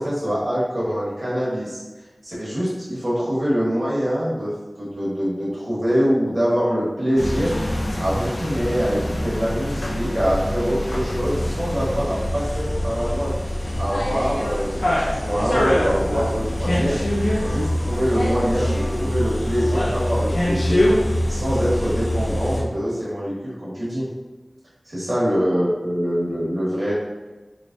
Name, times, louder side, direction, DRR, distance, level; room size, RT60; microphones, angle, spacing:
voice 1, 0.0-1.8 2.2-7.5 8.0-13.4 13.8-17.0 17.4-20.8 21.3-24.1 24.9-26.9, equal, 60° right, -7 dB, 1.3 m, -24 dB
sound 1, 7.2-22.6, left 1 dB, 85° left, 0.5 m, -24 dB
3.1 x 3.1 x 2.6 m, 1.2 s
wide cardioid pair, 45°, 0 cm